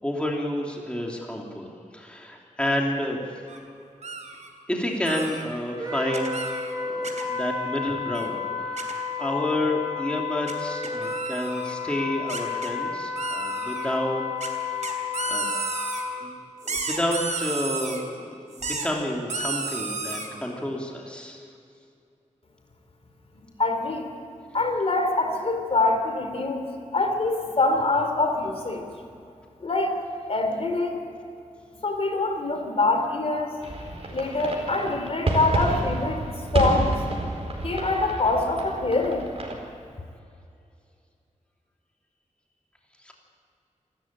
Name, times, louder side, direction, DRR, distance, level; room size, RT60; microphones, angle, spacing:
voice 1, 0.0-1.7 1.9-3.2 4.7-6.4 6.7-14.2 14.7-14.8 15.3-15.5 16.2-16.3 16.6-21.4 43.0-43.1, left 1 dB, 10° left, -1 dB, 3.0 m, -30 dB
sound 1, 3.5-3.6 4.0-4.5 5.1-5.4 6.1-6.7 7.0-7.2 8.1-8.3 8.8-8.9 10.5-10.6 10.8-11.8 12.3-12.7 13.2-13.9 14.4-14.5 14.8-16.0 16.6-18.0 18.5-18.9 19.3-20.3, right 4 dB, 65° right, 3.2 m, -32 dB
Wind instrument woodwind instrument, 5.8-16.2, left 5 dB, 30° right, 5.8 m, -31 dB
voice 2, 23.6-24.1 24.5-26.6 26.9-28.8 29.6-29.9 30.3-31.0 31.8-33.7 34.1-36.9 37.6-39.3, left 2 dB, 50° left, 5 dB, 3.4 m, -24 dB
sound 2, 33.6-39.5, right 2 dB, 50° right, 4.6 m, -29 dB
28.0 x 13.5 x 8.8 m, 2.5 s
wide cardioid pair, 110°, 13 cm